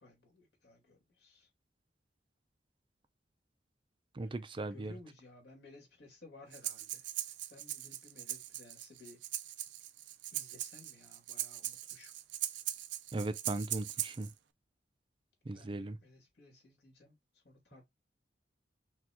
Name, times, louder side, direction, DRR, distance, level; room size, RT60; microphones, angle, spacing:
voice 1, 0.0-1.5 4.2-9.2 10.3-12.1 15.5-17.8, left 2 dB, 70° left, 2.3 m, -58 dB
voice 2, 4.1-4.9 13.1-14.3 15.5-16.0, right 2 dB, 30° right, 0.4 m, -38 dB
Breathing, 6.5-14.3, right 13 dB, 90° right, 0.5 m, -40 dB
5.9 x 2.4 x 3.0 m
head